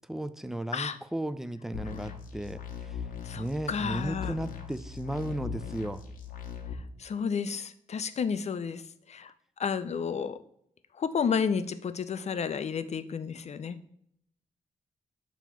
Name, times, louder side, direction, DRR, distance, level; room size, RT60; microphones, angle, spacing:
voice 1, 0.1-3.1 3.4-6.1, right 1 dB, 5° right, 12 dB, 0.5 m, -35 dB
sound 1, 1.7-6.7, left 7 dB, 85° left, 0.9 m, -40 dB
voice 2, 3.2-4.3 7.0-8.8 9.1-9.3 9.6-10.4 11.0-14.0, left 6 dB, 50° left, 12 dB, 0.5 m, -31 dB
7.0 x 3.0 x 5.8 m, 0.69 s
cardioid pair, 65°, 14 cm